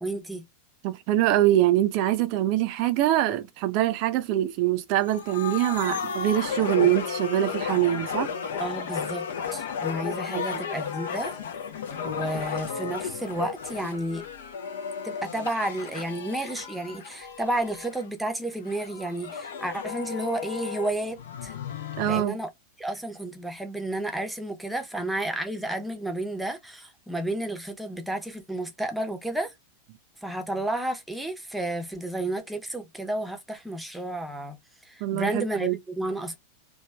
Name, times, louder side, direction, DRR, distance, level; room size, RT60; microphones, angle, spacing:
voice 1, 0.0-0.4 8.6-11.4 12.0-14.2 15.0-21.5 22.1-22.5 22.8-29.6 30.2-34.6 34.8-36.4, right 1 dB, 5° right, 0.8 m, -31 dB
voice 2, 0.8-8.3 10.3-10.4 22.0-22.4 35.0-35.8, right 14 dB, 45° right, 0.5 m, -24 dB
sound 1, 5.0-18.1 18.7-22.2, left 6 dB, 60° left, 0.6 m, -34 dB
3.1 x 2.3 x 2.2 m
figure-of-eight pair, 90°, 0 cm